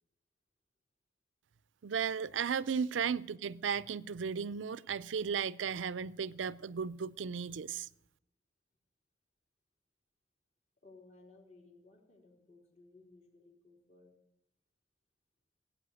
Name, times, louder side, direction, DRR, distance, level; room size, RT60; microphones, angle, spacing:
voice 1, 1.8-7.9, right 6 dB, 85° right, 0.5 m, -35 dB
voice 2, 10.8-14.1, left 3 dB, 40° left, 3.6 m, -59 dB
17.5 x 8.6 x 8.3 m
head